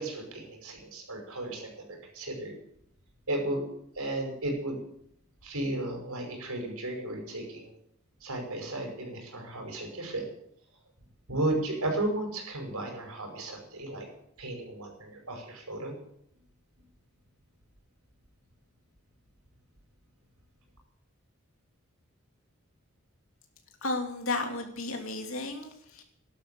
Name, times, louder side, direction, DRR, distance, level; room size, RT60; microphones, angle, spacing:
voice 1, 0.0-2.6 3.3-3.7 4.0-4.8 5.4-7.7 8.2-10.3 11.3-14.1 14.4-15.9, right 1 dB, 85° right, 2 dB, 5.9 m, -34 dB
voice 2, 23.8-26.0, left 2 dB, 70° left, 3 dB, 3.1 m, -33 dB
13.0 x 12.0 x 7.8 m, 0.71 s
head